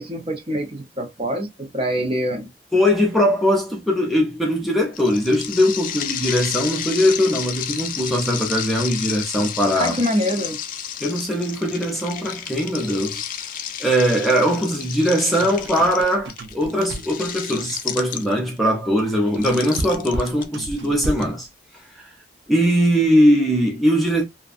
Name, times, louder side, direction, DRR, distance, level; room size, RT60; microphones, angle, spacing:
voice 1, 0.0-2.5 9.7-10.6, equal, 30° right, 0.8 m, -25 dB
voice 2, 2.7-10.0 11.0-13.2 13.8-21.5 22.5-24.2, equal, ahead, 0.6 m, -20 dB
sound 1, 4.9-18.6 19.3-21.2, left 9 dB, 50° left, 0.4 m, -31 dB
sound 2, 14.9-17.3 19.0-21.5, right 1 dB, 70° right, 0.5 m, -32 dB
2.6 x 2.2 x 2.4 m
head